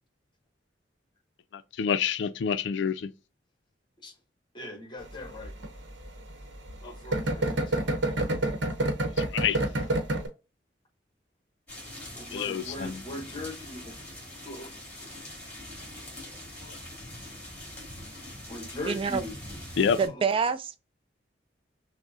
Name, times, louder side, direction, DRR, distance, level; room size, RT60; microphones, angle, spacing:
voice 1, 1.5-3.1 9.2-9.6 12.3-13.0 16.6-16.8 19.8-20.0, left 7 dB, 80° left, 0.3 m, -28 dB
voice 2, 4.5-5.5 6.8-7.9 12.2-13.9 14.4-14.7 18.5-19.4 20.1-20.2, left 1 dB, 25° left, 0.9 m, -40 dB
sound 1, 5.0-10.3, right 1 dB, 85° right, 0.8 m, -28 dB
sound 2, 11.7-20.1, left 1 dB, 10° left, 2.2 m, -43 dB
voice 3, 18.8-19.2 20.0-20.8, right 5 dB, 30° right, 0.3 m, -27 dB
6.0 x 2.0 x 2.6 m
head